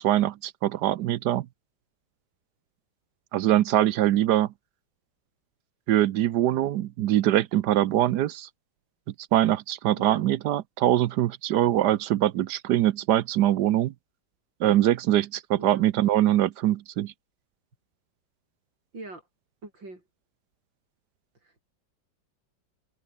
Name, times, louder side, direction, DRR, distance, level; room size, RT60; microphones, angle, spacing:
voice 1, 0.0-1.5 3.3-4.5 5.9-8.5 9.3-13.9 14.6-17.1, right 13 dB, 70° right, 1.2 m, -23 dB
voice 2, 9.9-10.2 15.5-15.9 18.9-19.2 19.6-20.0 21.4-21.6, right 2 dB, 90° right, 7.7 m, -42 dB
omnidirectional pair, 2.0 m